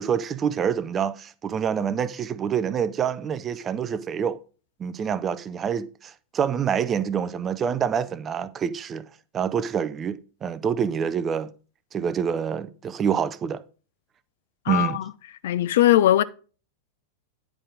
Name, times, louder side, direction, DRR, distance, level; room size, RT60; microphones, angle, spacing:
voice 1, 0.0-4.4 4.8-9.0 9.3-11.5 11.9-13.6 14.7-15.0, right 7 dB, 25° right, 0.5 m, -26 dB
voice 2, 14.7-15.0 15.4-16.2, left 13 dB, 55° left, 0.5 m, -19 dB
9.8 x 4.7 x 5.1 m
figure-of-eight pair, 90°, 0 cm